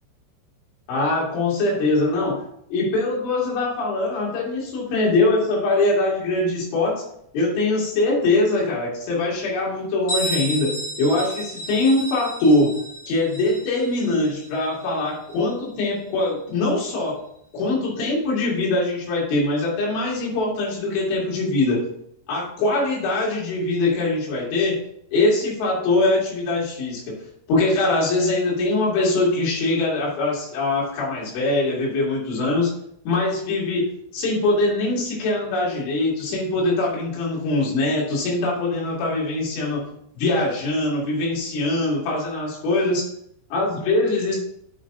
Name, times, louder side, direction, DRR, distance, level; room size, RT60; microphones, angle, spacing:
voice 1, 0.9-2.4 2.7-7.0 7.3-12.8 13.1-17.2 17.5-21.8 22.3-24.8 25.1-27.0 27.5-32.7 33.0-33.8 34.1-39.8 40.2-43.0 43.5-44.4, left 2 dB, 75° left, -4 dB, 4.9 m, -22 dB
Bell, 10.1-15.6, equal, 30° left, 4.0 m, -32 dB
8.5 x 8.2 x 2.7 m, 0.71 s
omnidirectional pair, 5.5 m